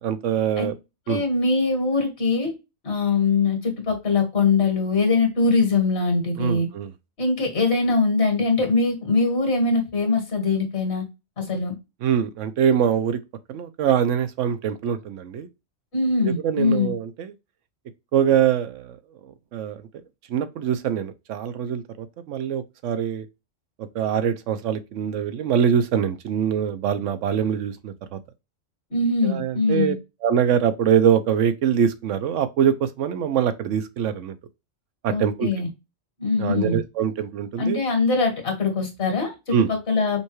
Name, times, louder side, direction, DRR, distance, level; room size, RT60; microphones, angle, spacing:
voice 1, 0.0-0.8 1.1-1.2 6.4-6.9 12.0-13.2 13.5-15.5 16.2-17.3 18.1-19.0 19.2-19.9 20.3-23.3 23.8-28.2 29.2-29.9 30.2-34.4 35.0-35.5 36.4-37.8 39.5-39.7, right 8 dB, 80° right, 1.0 m, -23 dB
voice 2, 1.1-2.5 2.8-6.7 7.2-11.0 11.4-11.8 15.9-16.9 28.9-29.9 35.1-35.7 36.2-36.8 37.6-40.2, left 3 dB, 60° left, 1.8 m, -22 dB
5.4 x 2.3 x 3.0 m
omnidirectional pair, 1.3 m